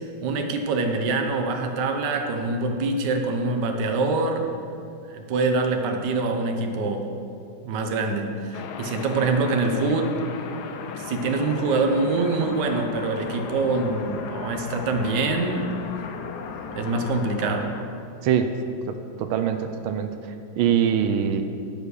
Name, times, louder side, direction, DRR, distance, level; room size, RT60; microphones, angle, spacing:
voice 1, 0.2-4.5 5.1-7.1 7.6-10.1 11.0-15.7 16.7-17.7, right 3 dB, 65° right, 4 dB, 1.4 m, -25 dB
sound 1, 8.5-17.8, left 5 dB, 70° left, 1.0 m, -36 dB
voice 2, 18.9-20.1 20.6-21.4, right 8 dB, 90° right, 7 dB, 1.4 m, -23 dB
10.5 x 5.1 x 6.3 m, 2.6 s
omnidirectional pair, 2.2 m